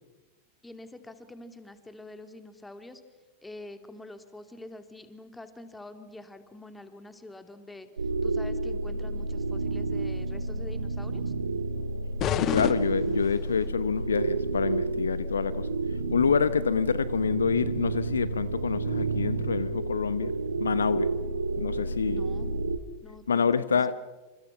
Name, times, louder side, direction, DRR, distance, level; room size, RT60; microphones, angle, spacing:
voice 1, 0.6-3.0 3.4-7.9 8.2-11.2 22.1-22.5 23.0-23.8, left 2 dB, 5° left, 2.7 m, -46 dB
sound 1, 8.0-22.8, right 3 dB, 75° right, 1.7 m, -30 dB
sound 2, 12.2-13.7, left 11 dB, 35° left, 1.4 m, -30 dB
voice 2, 12.4-20.3 20.6-21.1 21.6-22.2 23.3-23.9, left 6 dB, 70° left, 0.9 m, -27 dB
28.5 x 28.0 x 5.9 m
figure-of-eight pair, 90°, 0 cm